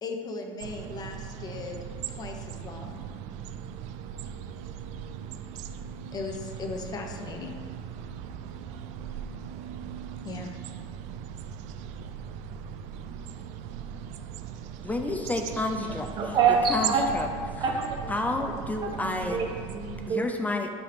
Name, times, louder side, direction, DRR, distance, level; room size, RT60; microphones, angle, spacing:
voice 1, 0.0-1.8 2.1-3.0 6.1-7.6 10.2-10.5, left 3 dB, 30° left, 3 dB, 1.1 m, -37 dB
sound 1, 0.6-20.1, right 8 dB, 60° right, 0.4 m, -39 dB
voice 2, 14.8-16.4 16.7-17.3 18.1-19.4 20.1-20.7, left 2 dB, 10° left, 4 dB, 0.5 m, -30 dB
voice 3, 16.2-17.0 17.6-18.0 19.0-20.3, right 5 dB, 35° right, 1 dB, 1.0 m, -26 dB
10.5 x 5.5 x 3.5 m, 2.1 s
supercardioid pair, 130°, 14 cm